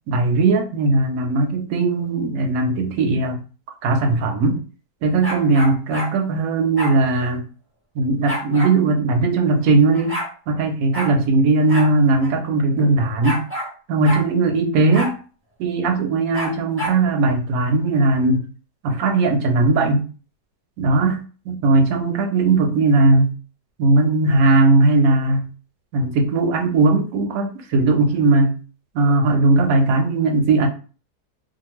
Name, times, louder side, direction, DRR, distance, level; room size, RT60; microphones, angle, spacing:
voice 1, 0.1-3.4 3.8-4.6 5.0-7.4 8.0-10.2 10.5-13.4 13.9-15.1 15.6-18.4 18.8-20.0 20.8-23.3 23.8-25.5 25.9-28.6 28.9-30.7, right 3 dB, 70° right, 6 dB, 0.9 m, -18 dB
sound 1, 5.2-6.1 6.8-7.0 8.3-8.7 9.6-9.7 9.9-10.3 10.9-11.1 11.7-11.9 12.2-12.3 13.2-13.7 14.0-14.2 14.9-15.1 16.3-17.0, right 1 dB, 15° right, 0.5 m, -28 dB
2.6 x 2.4 x 2.9 m, 0.37 s
omnidirectional pair, 1.7 m